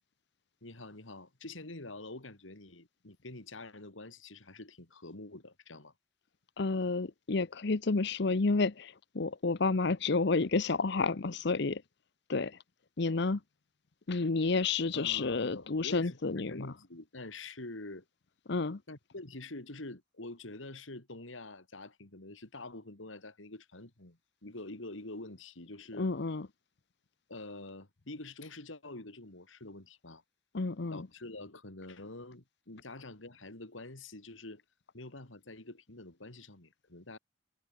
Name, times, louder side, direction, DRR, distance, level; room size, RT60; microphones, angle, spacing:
voice 1, 0.6-5.9 14.9-18.1 18.9-26.1 27.3-30.2 30.9-34.6 34.9-37.2, left 2 dB, 80° left, 3.0 m, -46 dB
voice 2, 6.6-11.8 12.3-12.6 13.0-13.4 14.1-16.7 18.5-18.8 26.0-26.5 30.5-31.1, left 3 dB, 60° left, 0.8 m, -30 dB
head